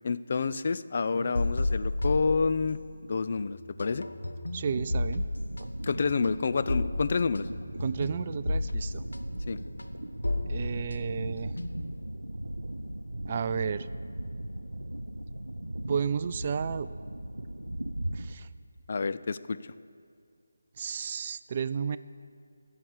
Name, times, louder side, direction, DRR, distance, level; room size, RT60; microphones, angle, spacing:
voice 1, 0.0-4.1 5.8-7.5 9.5-9.6 18.9-19.7, left 4 dB, 40° left, 13 dB, 0.4 m, -29 dB
Drum, 1.1-4.8, equal, 10° left, 1.8 m, -52 dB
sound 1, 1.4-3.1 3.4-12.0, left 2 dB, 70° left, 1.0 m, -33 dB
voice 2, 4.5-5.2 7.8-9.0 10.5-11.5 13.2-13.9 15.9-16.9 18.1-18.5 20.8-22.0, right 6 dB, 30° right, 14 dB, 0.3 m, -32 dB
sound 2, 4.6-18.4, right 1 dB, 85° right, 0.6 m, -38 dB
14.5 x 7.5 x 8.2 m, 2.3 s
figure-of-eight pair, 155°, 0 cm